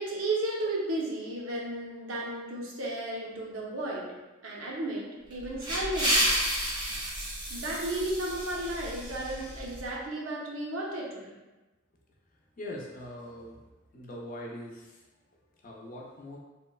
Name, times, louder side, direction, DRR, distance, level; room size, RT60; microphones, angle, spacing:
voice 1, 0.0-6.3 7.5-11.3, right 1 dB, 80° right, -4 dB, 0.6 m, -34 dB
sound 1, 5.3-9.8, right 1 dB, 20° right, 0.6 m, -31 dB
voice 2, 12.3-16.4, left 1 dB, 40° left, -2 dB, 0.5 m, -43 dB
2.9 x 2.1 x 2.2 m, 1.1 s
head